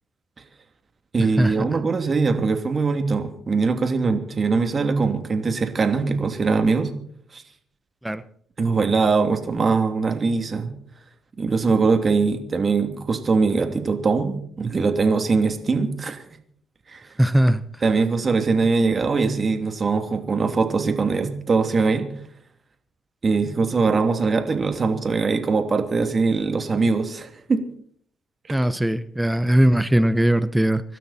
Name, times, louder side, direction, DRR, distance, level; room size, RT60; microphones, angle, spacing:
voice 1, 1.1-6.9 7.3-7.4 8.6-10.7 11.4-16.2 16.9-17.1 17.8-22.0 23.2-27.7 28.5-28.6, right 4 dB, 35° right, 6 dB, 2.9 m, -22 dB
voice 2, 17.2-17.6 28.5-30.8, right 1 dB, 5° right, 14 dB, 0.9 m, -19 dB
25.5 x 12.5 x 4.4 m, 0.62 s
cardioid pair, 90°, 0 cm